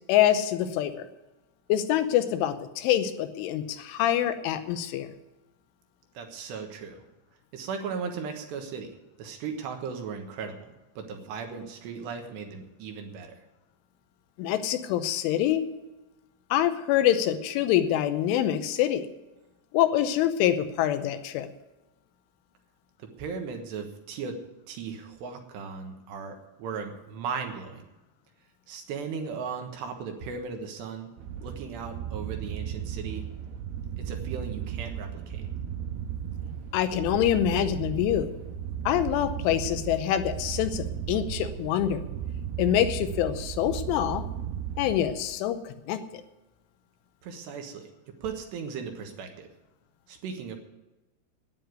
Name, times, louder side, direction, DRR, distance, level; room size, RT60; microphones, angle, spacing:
voice 1, 0.1-1.1 1.7-5.1 14.4-15.6 16.5-19.0 19.7-21.5 36.7-38.3 38.9-42.0 42.6-44.3 44.8-46.2, left 11 dB, 80° left, 10 dB, 3.1 m, -25 dB
voice 2, 6.1-7.0 7.5-8.9 9.2-10.7 11.0-13.3 23.2-24.4 24.7-27.8 28.7-31.1 31.4-33.3 34.0-35.5 47.2-47.9 48.2-49.5 50.1-50.6, right 5 dB, 70° right, 4 dB, 3.0 m, -37 dB
sound 1, 31.2-45.4, right 9 dB, 90° right, 2.3 m, -35 dB
9.9 x 9.8 x 9.4 m, 1.0 s
omnidirectional pair, 6.0 m